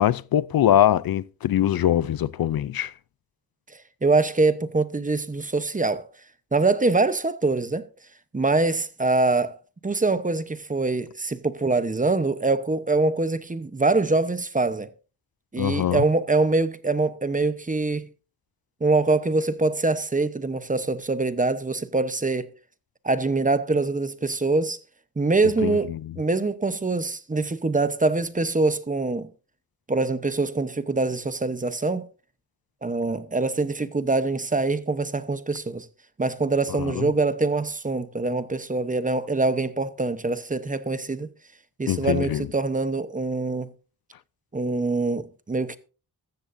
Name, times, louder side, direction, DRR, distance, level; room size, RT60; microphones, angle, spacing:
voice 1, 0.0-2.9 15.6-16.0 25.6-25.8 36.8-37.1 41.9-42.4, left 11 dB, 65° left, 0.5 m, -22 dB
voice 2, 4.0-6.1 6.5-7.9 8.3-9.6 9.8-14.9 15.5-18.1 18.8-22.5 23.0-24.8 25.2-29.3 29.9-32.1 32.8-35.9 36.2-41.3 41.8-43.7 44.5-45.8, right 3 dB, 20° right, 0.8 m, -24 dB
14.5 x 14.0 x 2.6 m
wide cardioid pair, 140°, 39 cm